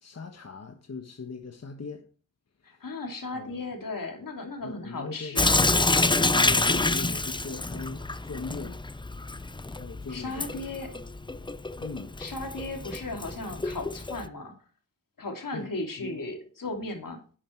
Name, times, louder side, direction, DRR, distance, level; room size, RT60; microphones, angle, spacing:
voice 1, 0.0-2.1 2.6-2.9 3.3-3.6 4.6-5.4 6.0-8.8 9.7-11.0 11.8-12.1 15.5-15.7 16.0-16.2, left 4 dB, 50° left, 1.3 m, -40 dB
voice 2, 2.6-5.6 10.1-10.9 12.2-14.5 15.2-17.2, left 2 dB, 80° left, 3.1 m, -36 dB
Sink (filling or washing) / Drip, 5.4-14.3, left 2 dB, 15° left, 0.5 m, -27 dB
11.0 x 8.8 x 4.6 m
wide cardioid pair, 85°, 33 cm